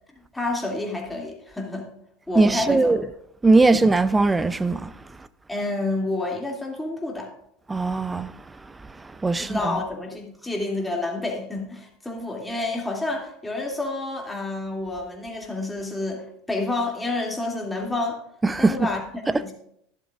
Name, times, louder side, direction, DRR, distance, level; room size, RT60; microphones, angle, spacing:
voice 1, 0.3-1.9 2.3-2.9 3.5-3.6 5.5-7.3 9.4-18.2 18.6-19.0 19.3-19.5, left 2 dB, 10° left, 2.6 m, -29 dB
voice 2, 2.4-3.0 3.4-4.9 7.7-8.3 9.0-9.7 18.4-18.7, right 3 dB, 15° right, 0.6 m, -20 dB
12.5 x 11.0 x 2.5 m
hypercardioid pair, 80°, 0 cm